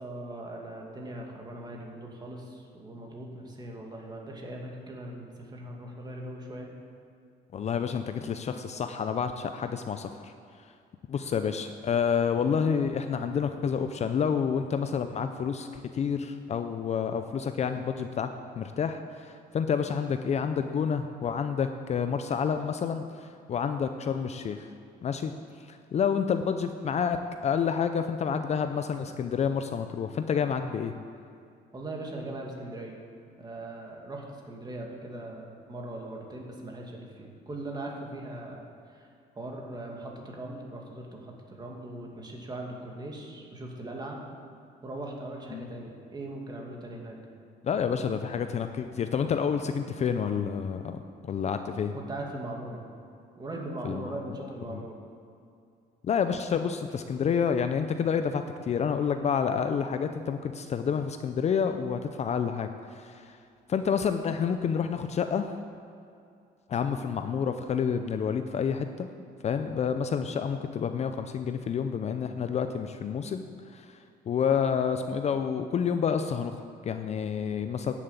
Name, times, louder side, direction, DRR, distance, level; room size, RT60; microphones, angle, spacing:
voice 1, 0.0-6.7 31.7-33.0 33.4-39.1 39.3-44.2 44.8-47.2 51.9-52.8 53.4-55.0, right 1 dB, 25° right, 0 dB, 2.4 m, -40 dB
voice 2, 7.5-10.3 11.1-18.3 18.5-24.7 25.0-25.3 25.7-27.2 27.4-30.9 45.5-45.7 47.6-51.9 53.8-54.8 56.0-63.4 63.7-65.5 66.7-69.1 69.4-73.4 73.7-74.0 74.3-77.9, left 7 dB, 40° left, 8 dB, 0.6 m, -29 dB
11.0 x 7.5 x 8.2 m, 2.4 s
cardioid pair, 110°, 17 cm